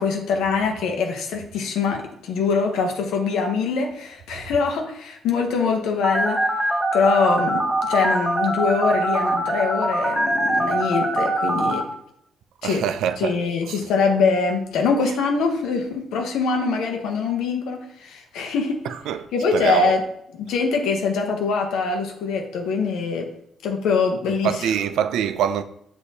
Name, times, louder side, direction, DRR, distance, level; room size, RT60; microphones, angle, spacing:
voice 1, 0.0-6.5 6.9-11.8 12.6-12.8 13.2-18.8 19.3-20.0 20.3-23.3 23.6-24.7, left 5 dB, 85° left, 0.7 m, -23 dB
Telephone, 6.0-11.8, right 1 dB, 15° right, 0.6 m, -23 dB
voice 2, 12.6-13.4 13.7-13.9 18.8-19.9 24.4-25.6, right 9 dB, 80° right, 0.3 m, -24 dB
6.3 x 2.7 x 2.8 m
cardioid pair, 90°, 0 cm